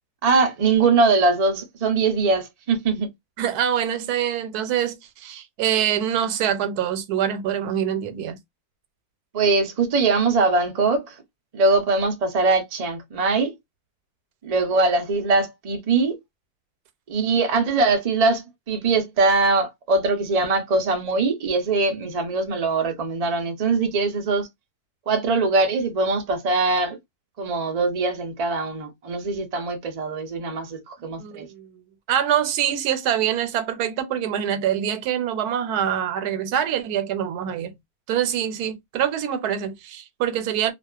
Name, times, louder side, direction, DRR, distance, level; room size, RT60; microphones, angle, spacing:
voice 1, 0.2-3.1 9.3-11.2 11.5-13.6 14.4-16.2 17.1-24.5 25.1-27.0 27.4-31.5, right 3 dB, 55° right, 0.4 m, -22 dB
voice 2, 3.4-8.4 31.2-31.7 32.1-37.7 38.1-40.7, right 9 dB, 90° right, 1.1 m, -25 dB
2.4 x 2.3 x 2.2 m
omnidirectional pair, 1.6 m